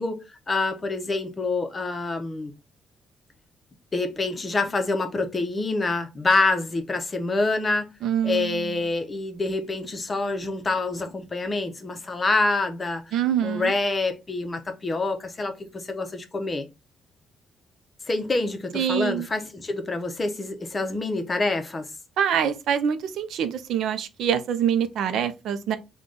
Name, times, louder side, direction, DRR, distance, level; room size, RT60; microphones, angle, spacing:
voice 1, 0.0-2.5 3.9-7.9 8.2-13.1 13.4-16.7 18.1-21.9, left 3 dB, 25° left, 0.6 m, -26 dB
voice 2, 8.0-8.8 13.1-13.7 18.7-19.3 22.2-25.8, right 9 dB, 75° right, 0.5 m, -25 dB
3.8 x 2.3 x 3.6 m
cardioid pair, 125°, 0 cm